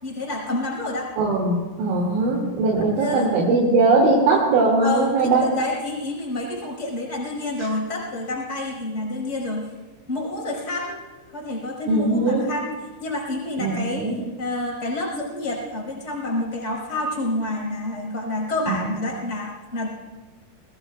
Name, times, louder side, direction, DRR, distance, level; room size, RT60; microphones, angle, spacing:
voice 1, 0.0-1.1 2.8-3.6 4.8-9.7 10.1-11.0 11.3-14.1 14.4-19.9, left 2 dB, 15° left, -2 dB, 4.0 m, -28 dB
voice 2, 1.2-5.5 11.9-12.4 13.6-14.2 18.7-18.8, right 3 dB, 70° right, -3 dB, 4.3 m, -20 dB
25.0 x 19.5 x 2.2 m, 1.3 s
omnidirectional pair, 6.0 m